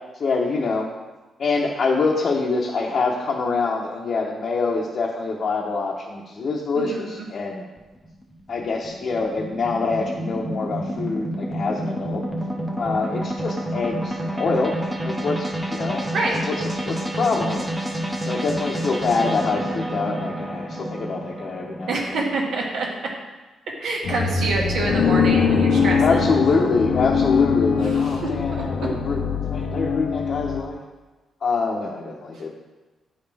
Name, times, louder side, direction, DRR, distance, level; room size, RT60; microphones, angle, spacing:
voice 1, 0.2-0.9 1.4-7.6 8.5-12.2 12.8-16.1 16.4-17.7 18.2-22.2 26.0-30.8 31.4-32.5, left 4 dB, 45° left, -3 dB, 0.8 m, -25 dB
voice 2, 6.7-7.2 16.1-16.4 21.9-22.9 23.8-26.3 27.8-28.2 28.5-28.6, right 2 dB, 75° right, -1 dB, 1.5 m, -27 dB
sound 1, 7.8-22.0, right 1 dB, 10° right, 0.8 m, -29 dB
sound 2, 24.0-30.6, left 6 dB, 75° left, 0.6 m, -22 dB
9.6 x 5.2 x 3.4 m, 1.2 s
cardioid pair, 140°, 0 cm